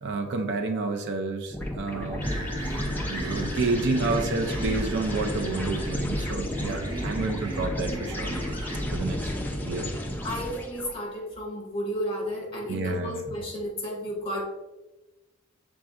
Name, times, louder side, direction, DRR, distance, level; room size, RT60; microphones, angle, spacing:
voice 1, 0.0-2.3 3.0-8.3 8.8-9.3 9.6-9.9 12.7-13.3, right 3 dB, 55° right, 5 dB, 0.4 m, -30 dB
sound 1, 1.5-10.9, left 1 dB, 10° left, 0.5 m, -32 dB
sound 2, 2.2-8.8, right 2 dB, 20° right, 0.8 m, -38 dB
voice 2, 10.2-14.4, equal, 25° left, -3 dB, 1.5 m, -32 dB
6.0 x 3.6 x 2.4 m, 1.1 s
head